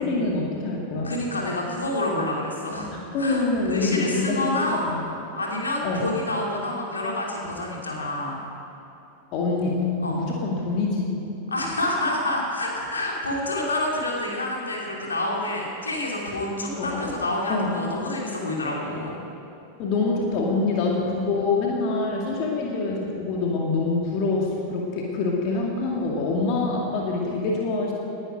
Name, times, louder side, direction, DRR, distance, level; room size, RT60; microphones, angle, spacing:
voice 1, 0.0-1.1 3.1-5.0 5.8-6.1 9.3-11.2 16.8-17.1 17.5-17.8 19.8-27.9, left 3 dB, 40° left, -2 dB, 2.2 m, -25 dB
voice 2, 1.0-4.8 5.3-8.4 10.0-10.2 11.5-19.2, left 1 dB, 75° left, -2 dB, 3.1 m, -28 dB
19.5 x 10.5 x 5.3 m, 2.8 s
figure-of-eight pair, 90°, 0 cm